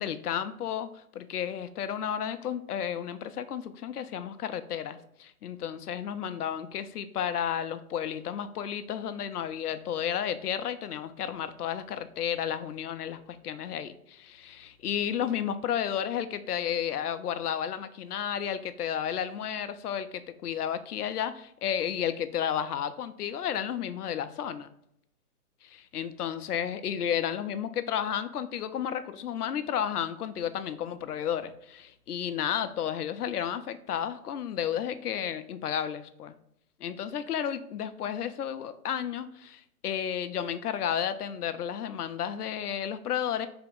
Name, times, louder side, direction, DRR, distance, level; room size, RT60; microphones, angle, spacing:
voice 1, 0.0-24.7 25.6-36.4 36.8-43.5, left 9 dB, 80° left, 12 dB, 0.6 m, -32 dB
3.5 x 2.9 x 3.7 m, 0.74 s
hypercardioid pair, 160°, 46 cm